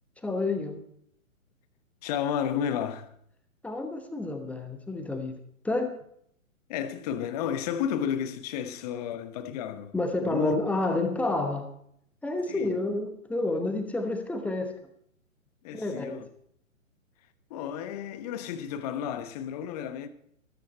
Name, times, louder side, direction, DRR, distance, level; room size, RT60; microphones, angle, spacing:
voice 1, 0.2-0.8 3.6-5.4 5.6-6.0 9.9-11.7 12.2-14.7 15.7-16.3, left 2 dB, 5° left, 1.0 m, -29 dB
voice 2, 2.0-3.1 6.7-9.9 10.2-10.5 12.5-12.7 15.6-16.2 17.5-20.1, left 9 dB, 30° left, 1.1 m, -32 dB
14.5 x 13.5 x 4.2 m
figure-of-eight pair, 125°, 41 cm